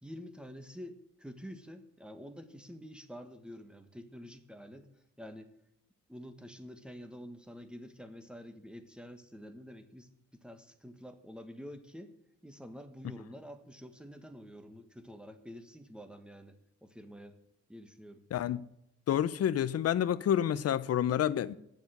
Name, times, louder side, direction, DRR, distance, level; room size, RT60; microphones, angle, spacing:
voice 1, 0.0-4.9 5.2-5.5 6.1-12.1 12.4-17.4 17.7-18.2, equal, 5° right, 1.3 m, -48 dB
voice 2, 19.1-21.5, left 10 dB, 55° left, 0.7 m, -29 dB
9.4 x 7.1 x 7.9 m
cardioid pair, 90°, 30 cm